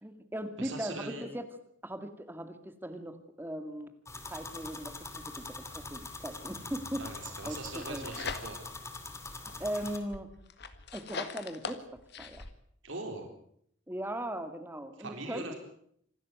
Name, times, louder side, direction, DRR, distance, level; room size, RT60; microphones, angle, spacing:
voice 1, 0.0-1.5 1.8-3.9 4.3-7.1 7.4-8.0 9.6-10.3 10.9-11.9 12.2-12.4 13.9-15.5, right 1 dB, 10° right, 8 dB, 2.1 m, -39 dB
voice 2, 0.6-1.2 7.0-8.6 12.8-13.3 15.0-15.6, right 3 dB, 70° right, 3 dB, 3.9 m, -41 dB
sound 1, 4.0-10.0, left 3 dB, 15° left, 2.5 m, -43 dB
sound 2, 7.6-8.8 9.3-12.5, left 4 dB, 55° left, 1.9 m, -42 dB
26.5 x 12.5 x 9.4 m, 0.70 s
head